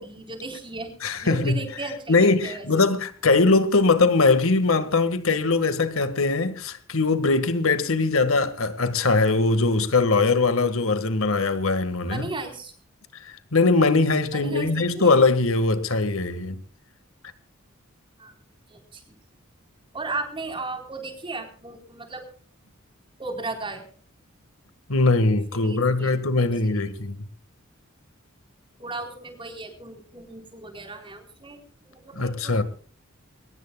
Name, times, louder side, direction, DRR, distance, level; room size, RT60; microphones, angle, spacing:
voice 1, 0.0-2.9 12.0-12.7 14.3-15.1 18.2-18.3 18.7-19.1 19.9-22.2 23.2-23.8 25.5-26.9 28.8-32.6, right 3 dB, 25° right, 4.0 m, -36 dB
voice 2, 1.0-1.5 2.1-12.3 13.5-16.6 24.9-27.2 32.1-32.6, left 3 dB, 80° left, 1.7 m, -21 dB
22.5 x 20.0 x 2.3 m
head